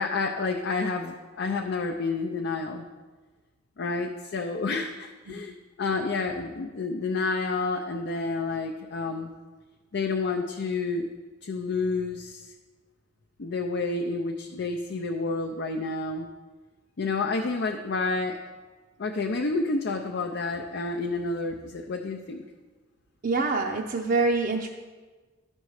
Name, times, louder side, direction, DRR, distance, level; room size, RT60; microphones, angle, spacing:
voice 1, 0.0-2.8 3.8-9.3 9.9-11.1 11.4-12.5 13.4-16.3 17.0-18.4 19.0-22.4, left 3 dB, 60° left, 3 dB, 0.5 m, -29 dB
voice 2, 23.2-24.7, right 3 dB, 50° right, 0 dB, 0.5 m, -25 dB
12.5 x 5.3 x 4.8 m, 1.3 s
head